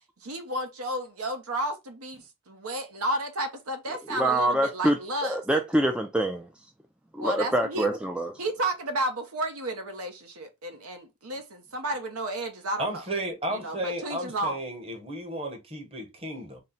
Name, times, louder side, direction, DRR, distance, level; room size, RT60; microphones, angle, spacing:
voice 1, 0.2-5.4 7.2-7.9 8.4-13.0 13.5-14.6, right 1 dB, 80° right, 0.8 m, -32 dB
voice 2, 4.1-6.5 7.1-8.3, right 1 dB, 5° right, 0.3 m, -25 dB
voice 3, 12.8-16.6, right 1 dB, 25° right, 0.9 m, -33 dB
4.2 x 2.1 x 3.9 m
head